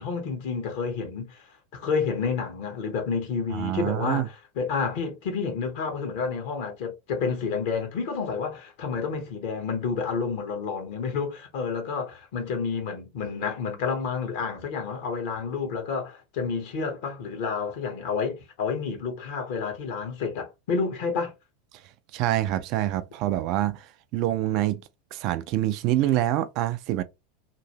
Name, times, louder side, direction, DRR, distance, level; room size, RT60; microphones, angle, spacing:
voice 1, 0.0-21.3, left 5 dB, 55° left, 1.1 m, -30 dB
voice 2, 3.5-4.3 22.1-24.8 25.1-27.0, right 14 dB, 45° right, 0.4 m, -26 dB
2.9 x 2.5 x 2.9 m
figure-of-eight pair, 85°, 0 cm